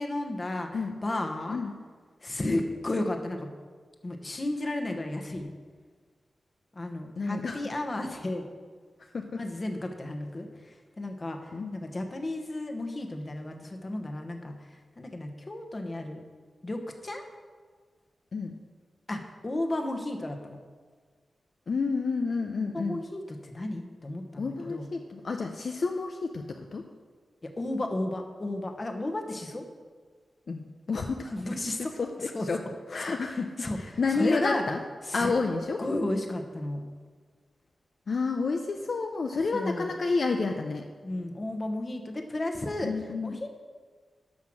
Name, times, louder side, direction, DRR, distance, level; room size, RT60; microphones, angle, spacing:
voice 1, 0.0-0.7 1.0-1.6 2.2-3.5 4.0-5.5 6.7-8.5 9.4-10.5 11.0-14.6 15.0-16.2 16.6-17.2 19.1-20.6 22.7-24.9 27.4-29.7 31.3-31.9 32.3-32.5 33.6-33.8 34.1-34.6 35.1-35.3 35.8-36.8 39.5-39.9 41.0-42.9 43.2-43.5, left 1 dB, 30° left, 4 dB, 1.2 m, -33 dB
voice 2, 7.2-7.6 9.0-9.4 11.5-11.8 18.3-18.5 21.7-23.0 24.4-26.9 30.5-31.4 31.8-32.6 32.9-34.8 35.1-35.8 38.1-40.8 42.8-43.3, left 4 dB, 60° left, 3 dB, 0.7 m, -30 dB
12.5 x 5.7 x 6.2 m, 1.5 s
wide cardioid pair, 105°, 0 cm